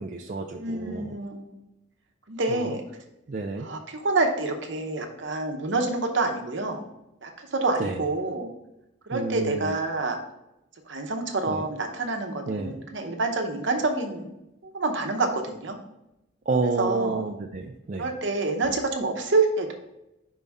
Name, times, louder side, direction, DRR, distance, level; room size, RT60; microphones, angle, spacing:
voice 1, 0.0-1.2 2.5-2.7 3.3-3.7 7.8-8.0 9.1-9.8 11.5-11.6 12.5-12.8 16.5-18.1, right 3 dB, 40° right, 1 dB, 0.4 m, -30 dB
voice 2, 0.5-1.6 2.3-2.8 3.6-6.8 7.2-8.5 9.1-10.2 10.9-14.3 14.6-15.8 16.8-17.2 17.9-19.7, right 3 dB, 65° right, 4 dB, 0.9 m, -27 dB
5.4 x 3.5 x 5.3 m, 0.90 s
head